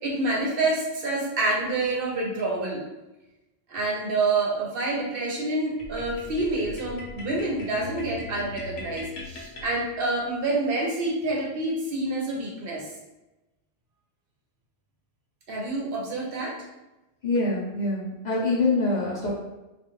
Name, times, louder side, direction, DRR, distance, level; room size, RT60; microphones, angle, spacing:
voice 1, 0.0-2.8 3.7-12.8 15.5-16.6, right 2 dB, 60° right, -2 dB, 0.7 m, -27 dB
sound 1, 5.8-10.3, left 2 dB, 80° left, 1.0 m, -40 dB
voice 2, 17.2-19.3, left 2 dB, 50° left, -8 dB, 0.6 m, -25 dB
2.3 x 2.3 x 2.9 m, 1.0 s
omnidirectional pair, 1.2 m